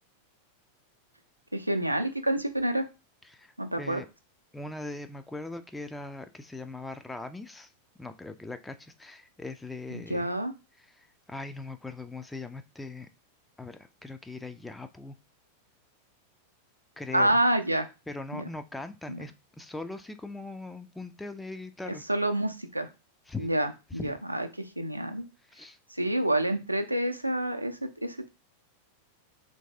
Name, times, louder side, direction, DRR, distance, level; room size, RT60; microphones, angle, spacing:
voice 1, 1.5-2.8 3.6-4.0 9.9-10.5 17.1-17.9 18.3-18.4 19.1-19.2 21.9-22.9 23.4-25.2 25.9-28.2, right 1 dB, 90° right, 6 dB, 0.4 m, -28 dB
voice 2, 4.5-7.7 8.0-10.3 10.8-13.1 13.6-15.2 17.0-17.3 18.1-22.0 23.3-23.5 24.0-24.1 25.5-25.8, left 2 dB, 5° left, 8 dB, 0.3 m, -40 dB
3.1 x 2.6 x 3.4 m, 0.27 s
figure-of-eight pair, 90°, 0 cm